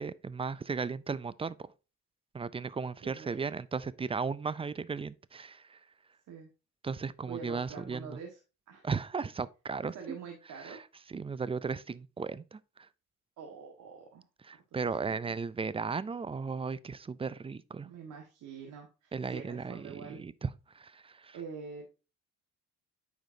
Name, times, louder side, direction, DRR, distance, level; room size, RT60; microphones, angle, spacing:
voice 1, 0.0-1.6 2.3-5.8 6.8-8.1 8.8-10.2 10.6-10.8 11.1-12.6 14.4-17.9 19.1-20.5 20.7-21.4, right 5 dB, 20° right, 0.4 m, -36 dB
voice 2, 3.0-3.6 6.3-6.5 7.3-8.4 8.7-8.8 9.8-10.8 13.4-14.2 17.7-20.2 21.3-21.9, right 6 dB, 80° right, 1.6 m, -45 dB
9.0 x 5.0 x 2.6 m
cardioid pair, 90°, 30 cm